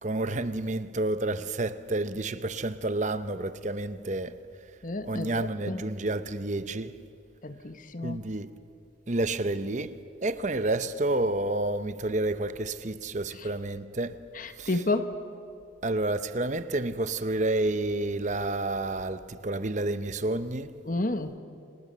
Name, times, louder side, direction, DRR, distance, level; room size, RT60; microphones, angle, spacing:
voice 1, 0.0-4.4 5.0-7.0 8.0-8.5 9.1-14.2 14.6-14.8 15.8-20.7, right 2 dB, 40° right, 0.8 m, -30 dB
voice 2, 4.8-5.3 5.6-5.8 7.4-8.2 14.7-15.1 20.9-21.3, left 2 dB, 40° left, 1.4 m, -30 dB
29.0 x 26.5 x 6.8 m
head